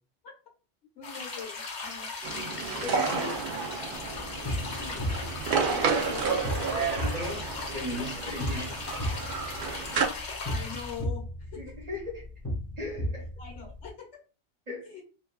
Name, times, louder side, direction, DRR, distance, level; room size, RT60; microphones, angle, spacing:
voice 1, 0.9-2.1 4.7-5.1 5.6-6.6 10.4-11.7 13.4-14.1 14.8-15.0, left 6 dB, 80° left, -2 dB, 1.5 m, -43 dB
sound 1, 1.0-11.0, left 4 dB, 50° left, 0.6 m, -38 dB
sound 2, 2.2-10.1, right 5 dB, 60° right, 0.6 m, -31 dB
voice 2, 2.8-3.4 5.8-6.1 6.8-7.5 7.7-8.8 11.6-12.2 12.8-13.3 14.7-14.9, left 1 dB, 40° right, -2 dB, 1.0 m, -36 dB
sound 3, 4.0-13.9, equal, 15° left, 0.8 m, -36 dB
3.0 x 2.4 x 2.2 m, 0.36 s
omnidirectional pair, 1.2 m